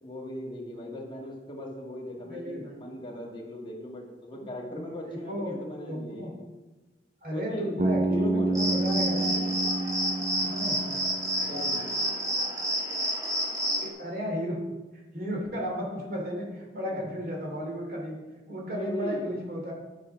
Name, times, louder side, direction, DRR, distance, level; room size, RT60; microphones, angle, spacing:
voice 1, 0.0-6.4 7.3-8.9 11.5-11.9 16.9-17.0 18.7-19.3, left 1 dB, 30° left, -1 dB, 1.7 m, -38 dB
voice 2, 2.2-2.7 4.3-5.6 5.9-6.3 7.2-9.5 10.4-10.8 13.8-14.6 15.1-19.7, equal, 55° right, -1 dB, 2.7 m, -34 dB
Bass guitar, 7.8-11.9, right 2 dB, 35° right, 0.5 m, -29 dB
sound 1, 8.5-13.9, equal, 20° right, 1.6 m, -29 dB
10.0 x 6.0 x 5.8 m, 1.2 s
head